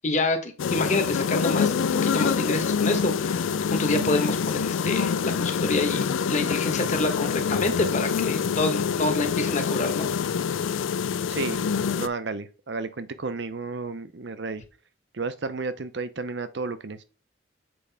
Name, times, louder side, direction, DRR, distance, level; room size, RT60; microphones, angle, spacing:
voice 1, 0.0-10.1, left 2 dB, 40° left, 1.0 m, -27 dB
sound 1, 0.6-12.1, left 6 dB, 85° left, 0.4 m, -26 dB
voice 2, 11.3-11.6 12.0-14.6 15.1-17.0, right 4 dB, 65° right, 0.7 m, -32 dB
7.7 x 4.7 x 3.4 m
head